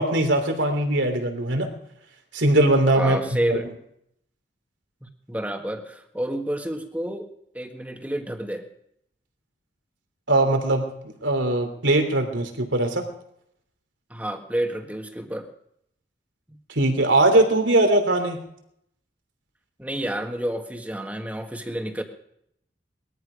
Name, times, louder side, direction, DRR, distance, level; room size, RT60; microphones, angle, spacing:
voice 1, 0.0-1.7 2.3-3.2 3.5-3.6 10.3-10.9 11.2-13.0 16.7-18.4, right 1 dB, 85° right, 5 dB, 3.1 m, -20 dB
voice 2, 3.0-3.7 5.0-7.3 7.5-8.7 14.1-15.5 16.5-16.6 19.8-22.0, right 1 dB, 10° right, 5 dB, 1.6 m, -29 dB
20.5 x 13.5 x 5.1 m, 0.73 s
head